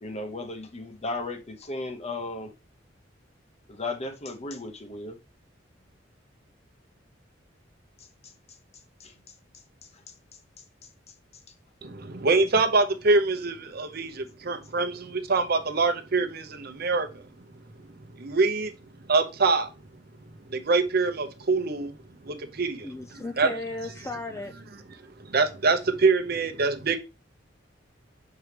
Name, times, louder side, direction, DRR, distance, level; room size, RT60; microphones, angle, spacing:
voice 1, 0.0-2.5 3.7-5.2 8.2-8.3 9.0-9.1, left 2 dB, 35° left, 0.8 m, -35 dB
voice 2, 11.8-17.2 18.2-18.7 19.1-19.7 20.5-22.0 22.2-23.5 25.2-27.0, right 3 dB, 55° right, 0.8 m, -25 dB
voice 3, 22.8-24.6, left 2 dB, 15° left, 0.4 m, -35 dB
6.3 x 4.7 x 3.3 m
head